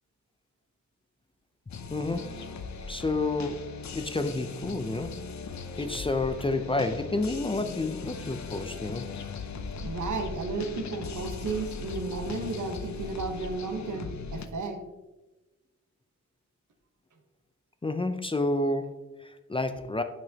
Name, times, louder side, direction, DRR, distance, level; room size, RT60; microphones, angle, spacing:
sound 1, 1.7-14.5, left 5 dB, 70° left, 0.6 m, -39 dB
voice 1, 1.9-2.4 2.9-5.2 5.8-9.1 17.8-20.0, left 2 dB, 20° left, 8 dB, 0.4 m, -30 dB
voice 2, 9.8-14.8, right 3 dB, 80° right, 4 dB, 1.1 m, -33 dB
9.1 x 6.1 x 2.8 m, 1.1 s
wide cardioid pair, 110°, 30 cm